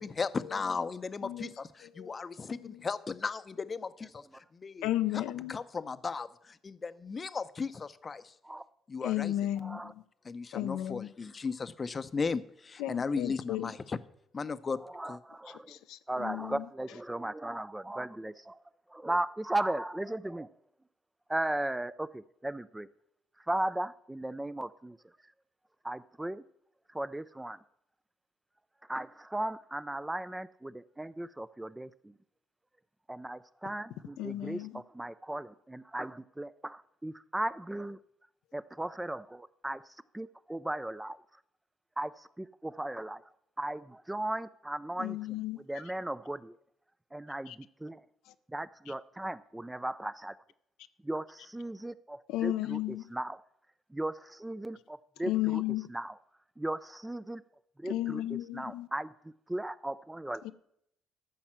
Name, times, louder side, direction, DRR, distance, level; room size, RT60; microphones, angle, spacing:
voice 1, 0.0-5.2 5.5-8.3 8.9-9.3 10.2-14.0 14.3-15.2, left 4 dB, 30° left, 13 dB, 0.6 m, -36 dB
voice 2, 4.8-5.5 9.0-10.0 10.5-11.1 12.8-13.7 15.7-16.7 34.2-34.8 45.0-45.6 47.5-47.6 52.3-53.1 55.2-55.9 57.8-58.9 60.4-60.5, left 14 dB, 90° left, 10 dB, 0.6 m, -34 dB
voice 3, 9.6-9.9 14.8-15.7 16.1-18.6 18.9-20.5 21.3-22.9 23.5-25.0 25.8-26.4 26.9-27.6 28.9-32.1 33.1-38.0 38.5-39.8 40.1-41.2 42.0-43.2 43.6-45.4 45.7-46.6 47.1-48.0 48.5-50.4 51.0-52.8 53.1-53.4 53.9-55.6 55.9-56.1 56.6-57.4 57.8-58.2 58.5-60.4, right 1 dB, 10° right, 15 dB, 0.4 m, -36 dB
13.5 x 5.5 x 7.4 m, 0.74 s
cardioid pair, 100°, 0 cm